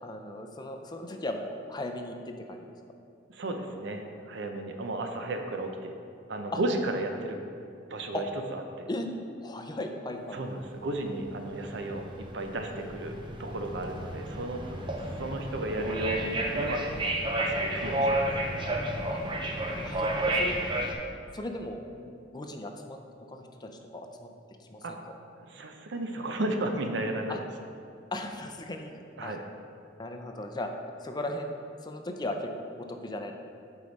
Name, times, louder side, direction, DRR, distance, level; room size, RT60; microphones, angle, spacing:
voice 1, 0.0-2.7 6.5-6.6 7.1-7.2 8.1-8.2 8.9-9.1 9.4-10.4 19.1-19.2 19.7-20.5 21.3-23.0 23.3-24.3 24.6-25.1 27.3-27.4 28.1-28.9 29.2-29.3 30.0-30.7 31.0-31.6 31.8-33.3, left 1 dB, 20° left, 4 dB, 0.5 m, -37 dB
voice 2, 3.3-5.9 6.3-7.4 7.9-8.3 8.5-8.9 10.3-14.8 15.2-16.8 17.4-18.1 24.8-25.0 25.3-27.4 29.2-29.4, right 2 dB, 70° right, 5 dB, 0.6 m, -34 dB
sound 1, 10.9-20.9, right 1 dB, 25° right, 0.6 m, -31 dB
8.3 x 4.7 x 4.1 m, 2.4 s
head